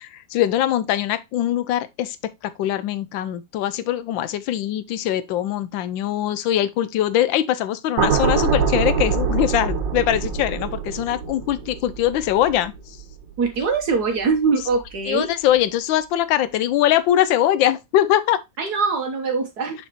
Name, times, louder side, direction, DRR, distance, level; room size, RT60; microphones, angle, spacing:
voice 1, 0.0-2.3 2.6-12.7 15.1-18.4, left 12 dB, 85° left, 1.4 m, -22 dB
sound 1, 8.0-14.3 14.6-14.9, right 6 dB, 75° right, 1.8 m, -25 dB
voice 2, 13.4-15.3 18.6-19.9, right 4 dB, 60° right, 1.5 m, -22 dB
6.3 x 5.4 x 3.0 m
omnidirectional pair, 2.0 m